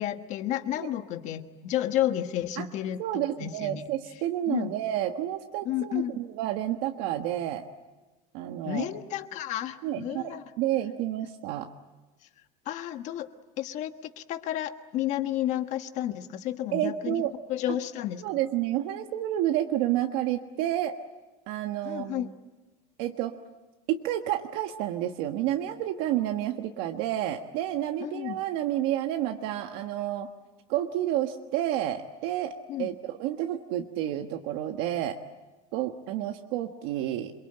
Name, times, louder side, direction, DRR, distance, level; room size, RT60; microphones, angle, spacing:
voice 1, 0.0-3.8 4.5-4.7 5.6-6.2 8.6-10.4 12.6-13.3 13.6-18.2 21.8-22.3 28.0-28.4 32.7-32.9, left 12 dB, 40° left, 9 dB, 1.4 m, -31 dB
voice 2, 3.0-7.6 8.3-8.9 9.8-11.7 16.7-17.3 18.2-21.0 21.5-22.3 23.0-23.3 23.9-30.3 30.7-35.2 35.7-37.3, right 12 dB, 65° right, 5 dB, 1.4 m, -30 dB
28.0 x 23.5 x 8.9 m, 1.2 s
cardioid pair, 175°, 18 cm